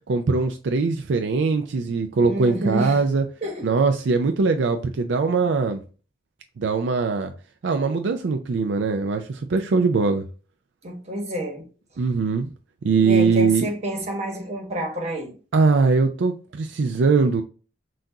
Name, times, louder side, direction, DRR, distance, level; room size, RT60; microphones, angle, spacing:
voice 1, 0.1-3.2 3.6-5.8 6.6-7.3 7.6-10.2 12.0-12.5 12.8-13.7 15.5-17.4, right 4 dB, 75° right, 0.4 m, -21 dB
voice 2, 2.2-3.0 3.4-3.7 10.8-11.7 12.9-15.3, right 1 dB, 35° right, 1.2 m, -28 dB
5.8 x 2.5 x 2.7 m
head